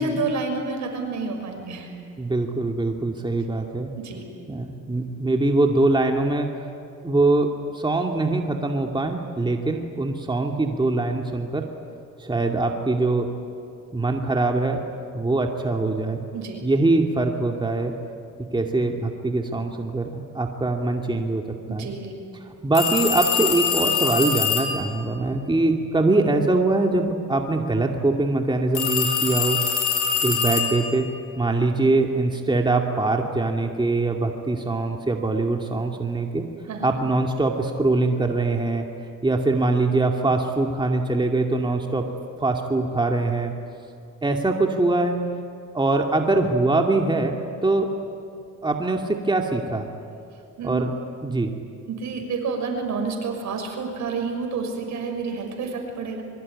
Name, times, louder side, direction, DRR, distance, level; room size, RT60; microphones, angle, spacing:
voice 1, 0.0-1.9 3.9-4.2 16.3-16.6 21.7-22.1 36.7-36.9 50.6-50.8 51.8-56.2, right 4 dB, 70° right, 3 dB, 6.2 m, -29 dB
voice 2, 2.2-3.9 4.5-6.5 7.0-7.5 7.7-11.7 12.2-13.3 13.9-14.8 15.1-16.2 16.6-17.9 18.5-21.4 21.7-21.9 22.5-29.6 30.2-31.1 31.4-36.4 36.8-38.9 39.2-42.0 42.4-43.5 44.2-45.2 45.7-47.9 48.6-49.9 50.6-50.9 51.2-51.5, right 2 dB, 15° right, 2 dB, 2.4 m, -23 dB
sound 1, 22.7-24.8 28.7-31.0, left 7 dB, 80° left, 4.9 m, -24 dB
24.5 x 23.5 x 9.9 m, 2.6 s
cardioid pair, 90°, 30 cm